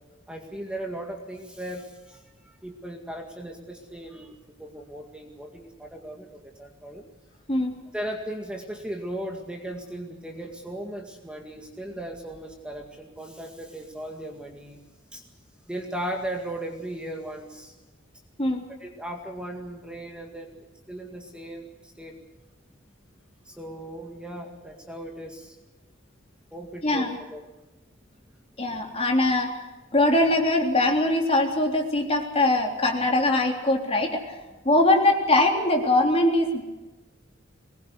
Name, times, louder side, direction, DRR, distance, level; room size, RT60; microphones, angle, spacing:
voice 1, 0.3-7.0 7.9-14.8 15.1-15.3 15.7-17.7 18.8-20.6 20.9-22.2 23.4-25.6 26.5-27.4, right 1 dB, 5° right, 2 dB, 2.0 m, -37 dB
voice 2, 26.8-27.2 28.6-29.6 29.9-34.4 34.6-36.6, left 2 dB, 30° left, 2 dB, 3.5 m, -22 dB
22.5 x 20.0 x 8.2 m, 1.1 s
head